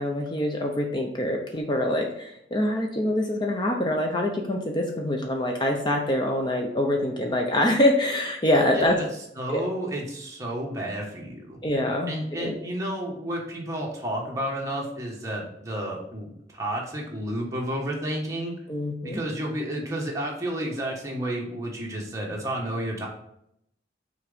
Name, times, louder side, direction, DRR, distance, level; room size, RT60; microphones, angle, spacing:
voice 1, 0.0-9.0 9.5-9.6 11.6-12.6 18.7-19.2, left 1 dB, 25° left, 1 dB, 0.6 m, -25 dB
voice 2, 8.7-9.1 9.4-11.6 12.1-16.3 16.5-18.5 19.0-23.1, right 1 dB, 20° right, -2 dB, 1.4 m, -31 dB
6.0 x 3.9 x 5.0 m, 0.75 s
head